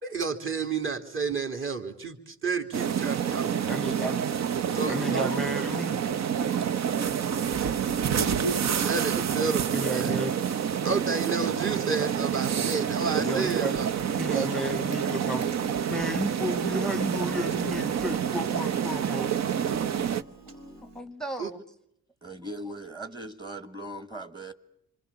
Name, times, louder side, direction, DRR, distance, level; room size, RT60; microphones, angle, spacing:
voice 1, 0.0-3.7 4.7-5.3 8.8-10.1 10.8-13.9 14.3-14.5 21.4-21.5, right 4 dB, 40° right, 3.2 m, -31 dB
sound 1, 2.7-20.2, right 8 dB, 60° right, 1.1 m, -28 dB
voice 2, 3.6-4.2 4.9-6.0 6.7-7.6 9.7-10.3 13.2-13.8 14.2-19.3 20.9-21.6, equal, ahead, 1.0 m, -33 dB
Piano, 13.0-21.0, right 1 dB, 80° right, 5.1 m, -48 dB
voice 3, 22.2-24.5, right 1 dB, 15° right, 1.6 m, -39 dB
26.5 x 26.0 x 7.1 m
cardioid pair, 90°, 30 cm